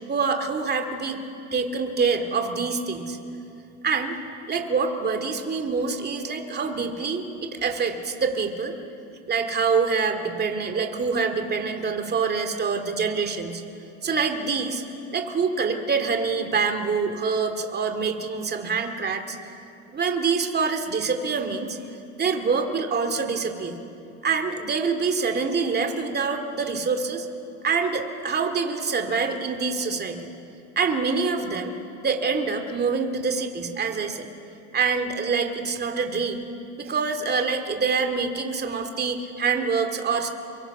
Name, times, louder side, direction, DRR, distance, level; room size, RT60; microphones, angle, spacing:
voice 1, 0.1-1.2 1.5-3.2 3.8-4.2 4.5-8.7 9.3-13.6 14.0-14.8 15.1-19.4 19.9-21.8 22.2-23.8 24.2-27.3 27.6-30.2 30.8-31.8 32.0-34.3 34.7-36.5 36.8-40.3, right 5 dB, 25° right, 5 dB, 2.4 m, -25 dB
29.5 x 23.0 x 6.0 m, 2.7 s
supercardioid pair, 110°, 37 cm